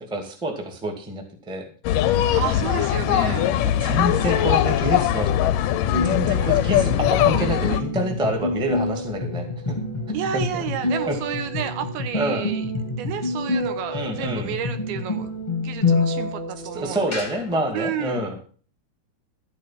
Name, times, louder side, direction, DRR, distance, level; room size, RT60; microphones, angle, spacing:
voice 1, 0.1-1.7 3.0-5.3 6.1-9.8 10.1-10.6 11.1-11.2 12.1-12.5 13.9-14.5 16.7-18.4, equal, ahead, 3 dB, 1.2 m, -27 dB
sound 1, 1.8-7.8, left 11 dB, 75° left, 2.0 m, -21 dB
voice 2, 2.3-3.5 10.1-12.7 12.9-15.3 15.6-17.2 17.7-18.3, right 9 dB, 75° right, 10 dB, 2.9 m, -31 dB
sound 2, 5.8-17.5, left 2 dB, 20° left, 1.0 m, -27 dB
12.5 x 9.1 x 5.9 m, 0.40 s
omnidirectional pair, 4.7 m